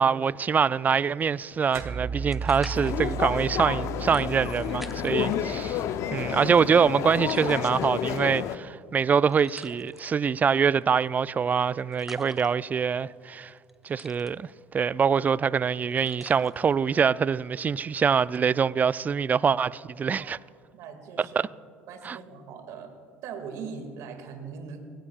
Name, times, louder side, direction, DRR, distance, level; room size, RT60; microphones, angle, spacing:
voice 1, 0.0-5.8 6.1-13.5 13.8-20.4 21.2-21.5 22.0-22.2, right 6 dB, 25° right, 0.3 m, -24 dB
sound 1, 1.6-5.4 5.9-6.8 7.2-18.9, right 1 dB, 5° right, 0.8 m, -48 dB
sound 2, 1.8-6.5, right 6 dB, 45° right, 1.6 m, -36 dB
sound 3, 2.7-8.6, left 10 dB, 55° left, 0.7 m, -30 dB
voice 2, 20.7-21.4 21.9-22.9 23.2-24.8, right 6 dB, 60° right, 2.2 m, -40 dB
24.5 x 17.0 x 2.4 m
hypercardioid pair, 60°, 6 cm